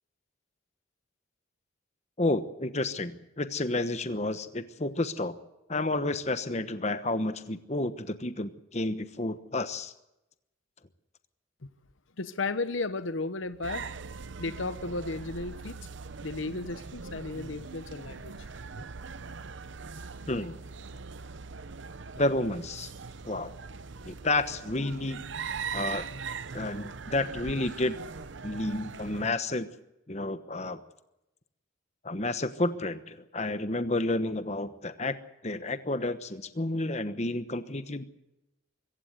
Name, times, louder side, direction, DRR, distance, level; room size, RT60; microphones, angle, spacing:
voice 1, 2.2-5.3 5.7-9.9 20.3-20.6 22.2-22.9 23.2-23.5 24.0-25.2 25.7-26.1 26.5-28.0 28.4-29.7 30.1-30.8 32.0-35.2 35.4-38.1, left 2 dB, 35° left, 11 dB, 1.1 m, -30 dB
voice 2, 12.2-13.9 14.4-15.8 16.2-18.3, left 3 dB, 75° left, 13 dB, 1.0 m, -34 dB
sound 1, 13.6-29.3, right 5 dB, 65° right, 0.8 m, -41 dB
24.5 x 15.5 x 8.1 m, 0.93 s
head